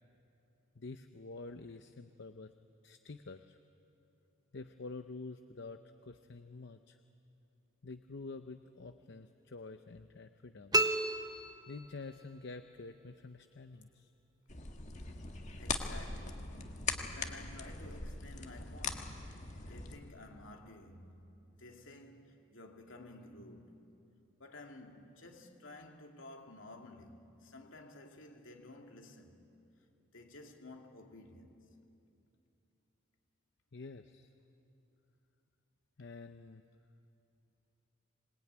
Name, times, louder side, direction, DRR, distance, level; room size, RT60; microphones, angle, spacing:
voice 1, 0.8-2.5 2.8-3.6 4.5-7.0 7.8-10.8 11.7-14.1 33.7-34.3 36.0-36.6, left 3 dB, 60° left, 0.7 m, -48 dB
sound 1, 10.7-12.3, right 1 dB, 20° right, 0.9 m, -32 dB
sound 2, 14.5-20.0, left 4 dB, 35° left, 1.6 m, -41 dB
voice 2, 15.3-23.9 24.4-29.4 30.0-31.7, left 2 dB, 75° left, 2.7 m, -53 dB
26.0 x 20.0 x 9.5 m
head